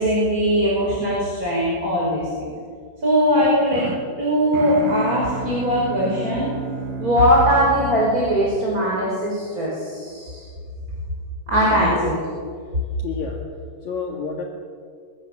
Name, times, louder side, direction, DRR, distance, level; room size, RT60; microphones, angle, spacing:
voice 1, 0.0-2.5 3.0-6.5 7.0-10.5 11.5-12.2, equal, 25° right, -4 dB, 5.6 m, -20 dB
sound 1, 3.3-9.5, right 3 dB, 70° right, 4.3 m, -33 dB
voice 2, 13.0-13.4 13.8-14.4, left 5 dB, 55° left, -1 dB, 3.2 m, -29 dB
25.0 x 23.0 x 7.4 m, 2.1 s
omnidirectional pair, 4.2 m